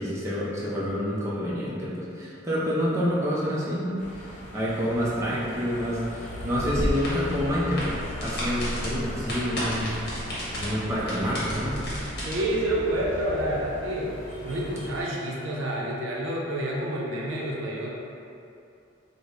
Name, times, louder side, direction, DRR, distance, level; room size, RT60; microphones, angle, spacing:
voice 1, 0.0-7.9 8.2-11.8, equal, 15° right, -8 dB, 0.5 m, -28 dB
sound 1, 4.0-15.0, equal, 35° left, 0.6 m, -40 dB
sound 2, 6.2-13.6, left 2 dB, 75° left, 0.5 m, -42 dB
sound 3, 6.5-12.3, equal, 55° left, 0.9 m, -32 dB
voice 2, 12.2-14.1 14.4-17.9, right 1 dB, 80° right, -3 dB, 0.5 m, -28 dB
3.3 x 2.1 x 3.7 m, 2.6 s
head